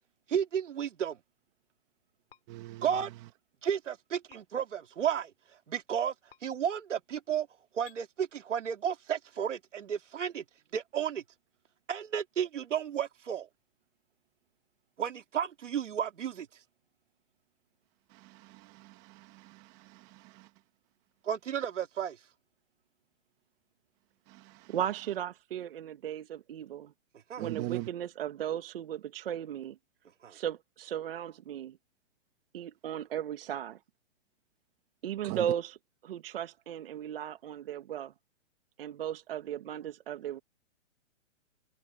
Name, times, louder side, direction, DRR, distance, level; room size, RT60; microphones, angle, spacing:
voice 1, 0.3-1.2 2.8-3.1 3.6-5.3 5.7-6.1 6.4-7.5 7.7-10.4 10.7-11.2 11.9-13.5 15.0-16.5 21.2-22.2 27.3-27.4 30.2-30.4, right 8 dB, 70° right, 2.7 m, -32 dB
sound 1, 2.3-2.4 4.3-4.4 6.3-6.4 7.8-8.0, left 12 dB, 50° left, 7.7 m, -54 dB
voice 2, 2.5-3.0 18.1-20.5 24.3-24.8 27.4-27.9 35.2-35.5, right 18 dB, 20° right, 1.4 m, -41 dB
voice 3, 24.7-26.9 27.4-29.8 30.3-31.8 32.5-33.8 35.0-35.8 36.0-38.1 38.8-40.4, right 10 dB, 50° right, 1.5 m, -36 dB
open air
hypercardioid pair, 165°, 37 cm